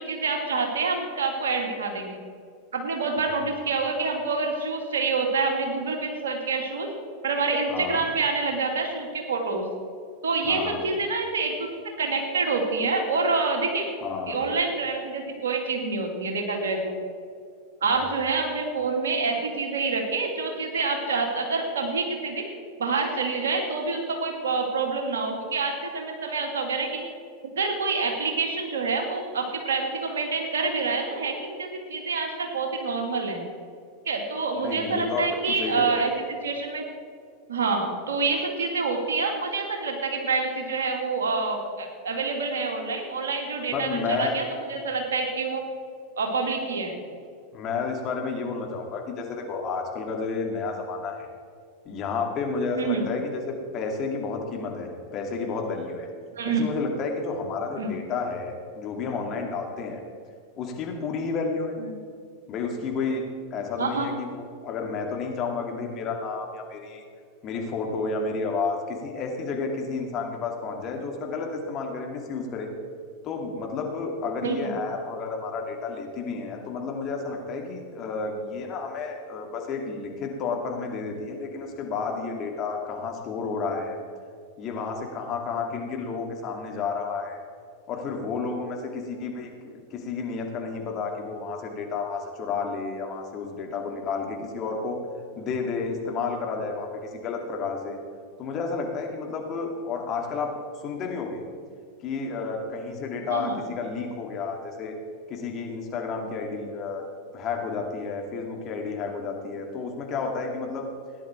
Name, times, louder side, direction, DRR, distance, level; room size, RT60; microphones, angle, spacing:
voice 1, 0.0-2.2 2.7-6.9 7.2-9.6 10.2-11.7 12.0-13.9 14.3-16.9 17.8-22.5 22.8-26.9 27.6-33.4 34.0-36.8 37.5-45.6 46.2-47.0 52.7-53.1 56.4-56.7 57.8-57.9 63.8-64.1 74.4-74.7 103.3-103.6, right 4 dB, 70° right, 2 dB, 2.4 m, -27 dB
voice 2, 7.7-8.0 10.4-10.8 14.0-14.5 34.6-36.0 43.7-44.4 47.5-51.3 51.8-56.1 56.4-60.0 60.5-61.7 62.5-63.2 63.5-67.0 67.4-72.7 73.2-84.0 84.6-87.4 87.9-95.0 95.4-98.0 98.4-100.5 100.8-101.4 102.0-104.9 105.3-107.1 107.3-110.9, left 4 dB, 40° left, 1 dB, 2.5 m, -31 dB
17.0 x 10.5 x 4.5 m, 2.2 s
figure-of-eight pair, 90°, 0 cm